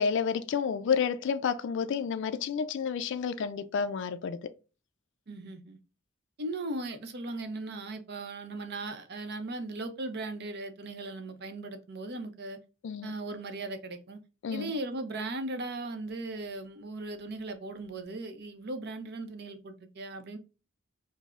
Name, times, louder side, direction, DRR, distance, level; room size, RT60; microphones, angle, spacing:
voice 1, 0.0-4.4 12.8-13.1 14.4-14.7, left 6 dB, 60° left, 0.3 m, -30 dB
voice 2, 5.3-5.8 6.4-12.6 13.0-14.2 14.5-20.4, right 2 dB, 55° right, 0.6 m, -38 dB
4.8 x 2.0 x 2.3 m
head